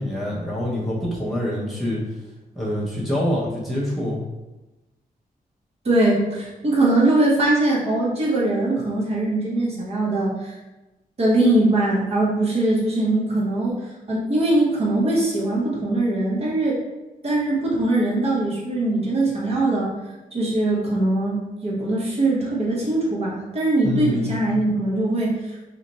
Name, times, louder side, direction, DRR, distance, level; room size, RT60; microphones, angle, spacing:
voice 1, 0.0-2.0 2.5-4.2 23.8-24.3, left 1 dB, ahead, -7 dB, 0.7 m, -25 dB
voice 2, 5.8-10.5 11.2-13.8 14.1-16.8 17.2-19.9 20.3-25.6, right 2 dB, 40° right, -5 dB, 1.0 m, -21 dB
3.0 x 2.4 x 3.9 m, 1.1 s
wide cardioid pair, 180°, 16 cm